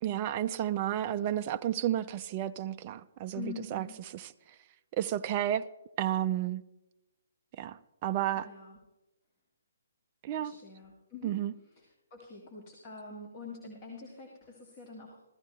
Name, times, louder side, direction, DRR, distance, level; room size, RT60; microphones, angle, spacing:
voice 1, 0.0-3.9 4.1-4.3 4.9-5.7 6.0-6.6 7.6-8.5 10.2-10.5 11.2-11.5, right 11 dB, 30° right, 0.3 m, -32 dB
voice 2, 3.3-4.0 8.4-8.8 10.4-11.4 11.7-11.9 12.1-15.2, left 4 dB, 30° left, 1.9 m, -45 dB
15.0 x 14.0 x 3.2 m
figure-of-eight pair, 130°, 0 cm